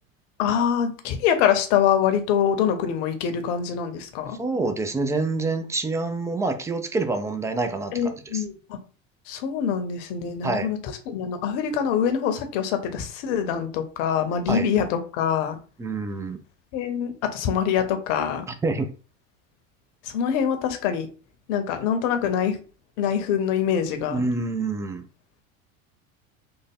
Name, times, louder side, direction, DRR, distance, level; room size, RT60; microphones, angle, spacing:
voice 1, 0.4-4.4 7.9-8.8 9.3-15.6 16.7-18.5 20.0-21.1 21.5-22.6 23.0-24.2, left 8 dB, 60° left, 7 dB, 0.9 m, -24 dB
voice 2, 4.4-7.9 8.3-8.4 10.4-10.7 14.5-14.7 15.8-16.4 18.6-18.9 24.1-25.0, right 3 dB, 10° right, 8 dB, 0.3 m, -26 dB
3.5 x 2.0 x 3.5 m, 0.36 s
hypercardioid pair, 80°, 41 cm